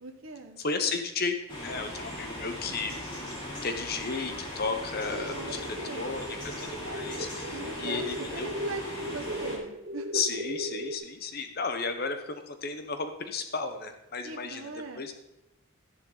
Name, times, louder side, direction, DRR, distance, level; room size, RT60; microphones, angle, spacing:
voice 1, 0.0-0.6 5.1-6.2 7.5-8.1 8.3-10.1 14.2-15.0, right 3 dB, 65° right, 3 dB, 1.3 m, -40 dB
voice 2, 0.6-3.0 3.6-8.5 10.1-14.7 14.9-15.1, left 4 dB, 45° left, 7 dB, 0.9 m, -34 dB
sound 1, 1.5-9.6, left 1 dB, 20° left, 4.3 m, -39 dB
sound 2, 4.9-11.0, equal, 45° right, 0.8 m, -38 dB
13.0 x 11.0 x 4.0 m, 0.93 s
head